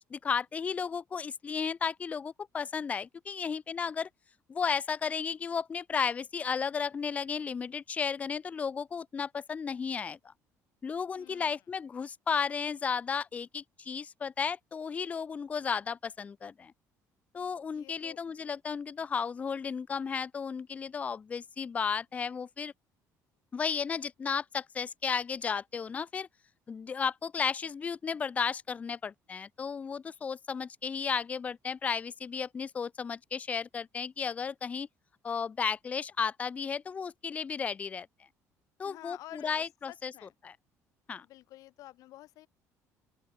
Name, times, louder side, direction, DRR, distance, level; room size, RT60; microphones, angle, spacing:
voice 1, 0.1-4.1 4.5-10.3 10.8-16.7 17.3-22.7 23.5-26.3 26.7-34.9 35.2-38.1 38.8-40.1 40.4-40.5 41.1-41.3, left 6 dB, 25° left, 0.5 m, -34 dB
voice 2, 11.2-11.6 17.7-18.2 38.8-40.4 41.2-42.5, left 16 dB, 70° left, 3.4 m, -51 dB
open air
cardioid pair, 155°, 6 cm